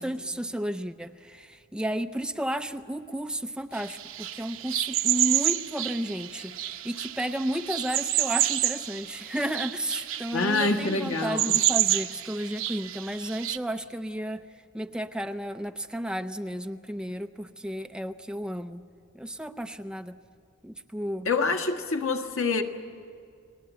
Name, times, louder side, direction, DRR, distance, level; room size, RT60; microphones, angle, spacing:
voice 1, 0.0-14.5 14.7-18.8 19.1-20.2 20.6-21.3, right 1 dB, 5° right, 8 dB, 0.5 m, -33 dB
sound 1, 3.7-13.6, right 12 dB, 70° right, 0.9 m, -29 dB
voice 2, 10.3-11.5 21.2-22.6, left 3 dB, 90° left, 5 dB, 1.6 m, -26 dB
29.5 x 19.0 x 8.2 m, 2.2 s
head